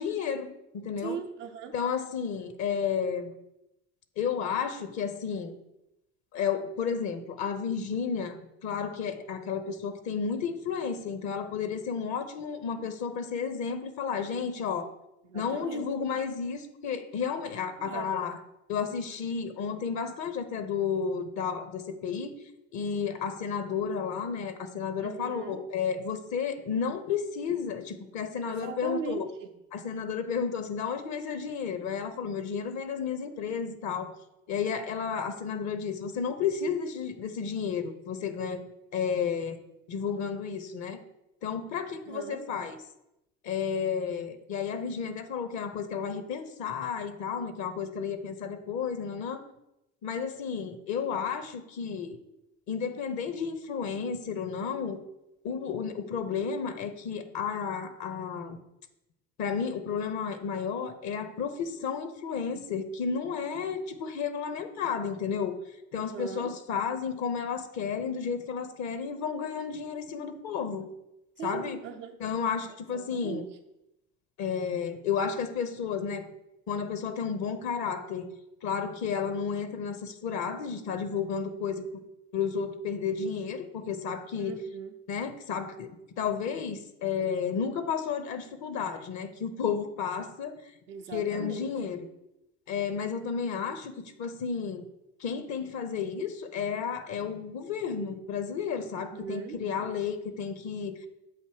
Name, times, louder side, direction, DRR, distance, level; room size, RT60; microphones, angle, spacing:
voice 1, 0.0-1.2 1.7-3.3 4.2-5.5 6.3-14.9 15.3-18.4 18.7-22.3 22.7-29.3 29.7-34.1 34.5-38.6 38.9-39.6 39.9-41.0 41.4-42.8 43.4-49.4 50.0-52.2 52.7-55.0 55.4-58.6 59.4-65.6 65.9-70.9 71.4-71.8 72.2-73.4 74.4-76.3 76.7-78.3 78.6-82.0 82.3-84.6 85.1-85.9 86.2-90.7 91.1-92.0 92.7-94.8 95.2-101.1, left 6 dB, 50° left, 10 dB, 0.7 m, -32 dB
voice 2, 1.0-1.7 15.2-15.9 17.8-18.3 25.0-25.6 28.4-29.5 42.1-42.5 66.0-66.5 71.4-72.2 72.9-73.4 84.4-84.9 90.9-91.7 99.0-99.6, right 7 dB, 85° right, 1 dB, 0.6 m, -39 dB
7.5 x 2.7 x 4.7 m, 0.87 s
hypercardioid pair, 60°, 36 cm